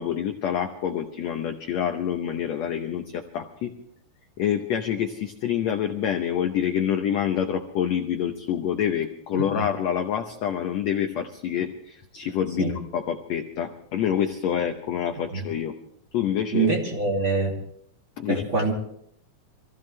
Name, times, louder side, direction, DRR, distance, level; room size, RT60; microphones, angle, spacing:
voice 1, 0.0-3.7 4.4-15.7 16.1-17.0 18.2-18.4, left 9 dB, 75° left, 5 dB, 1.6 m, -27 dB
voice 2, 9.3-9.7 12.6-12.7 15.3-15.4 16.5-17.5 18.3-18.7, right 4 dB, 35° right, -2 dB, 3.3 m, -25 dB
26.5 x 15.5 x 3.2 m, 0.70 s
omnidirectional pair, 4.3 m